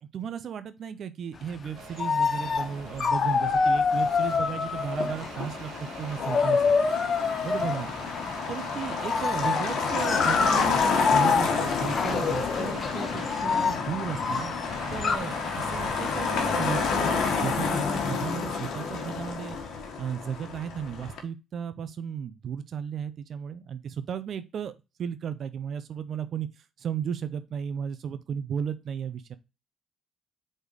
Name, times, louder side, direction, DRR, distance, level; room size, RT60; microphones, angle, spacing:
voice 1, 0.0-6.7 7.4-7.9 8.5-14.5 14.9-19.6 20.0-24.7 25.0-29.4, right 8 dB, 60° right, 12 dB, 0.6 m, -35 dB
sound 1, 1.7-1.8 2.0-2.7 3.0-5.4 6.0-7.8 9.0-15.2, left 5 dB, 45° left, 0.9 m, -26 dB
sound 2, 1.7-13.8 14.1-17.0, right 6 dB, 85° right, 1.2 m, -46 dB
Motor vehicle (road), 2.4-21.2, left 5 dB, 75° left, 1.6 m, -30 dB
5.1 x 4.4 x 4.6 m, 0.27 s
cardioid pair, 90°, 0 cm